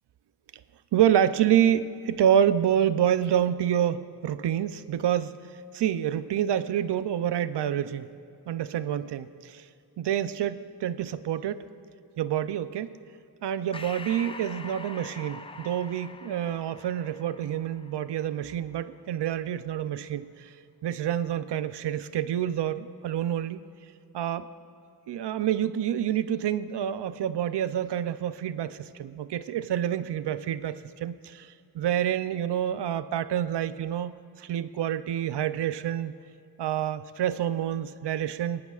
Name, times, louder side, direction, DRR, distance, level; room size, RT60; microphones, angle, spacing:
voice 1, 0.9-5.4 5.7-8.1 8.5-9.6 10.0-11.6 12.2-12.9 13.4-20.5 20.8-23.6 24.1-24.5 25.1-31.5 31.7-36.1 36.6-38.6, right 10 dB, 85° right, 13 dB, 0.6 m, -27 dB
Breathing, 13.7-18.6, left 3 dB, 15° left, 0.3 m, -44 dB
23.5 x 11.0 x 2.4 m, 2.6 s
wide cardioid pair, 105°, 40 cm